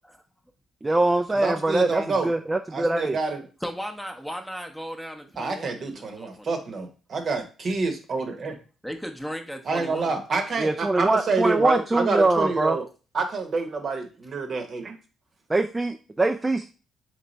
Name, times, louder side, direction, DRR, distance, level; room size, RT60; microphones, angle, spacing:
voice 1, 0.8-3.2 10.6-12.8 15.5-16.7, right 2 dB, 20° right, 5 dB, 0.3 m, -23 dB
voice 2, 1.3-2.3 2.7-3.4 5.4-8.5 9.7-12.8 13.1-14.9, right 4 dB, 50° right, 5 dB, 0.9 m, -27 dB
voice 3, 3.6-6.6 8.4-8.6 8.8-10.1, equal, ahead, 3 dB, 0.7 m, -36 dB
3.3 x 3.2 x 4.0 m, 0.35 s
cardioid pair, 90°, 0 cm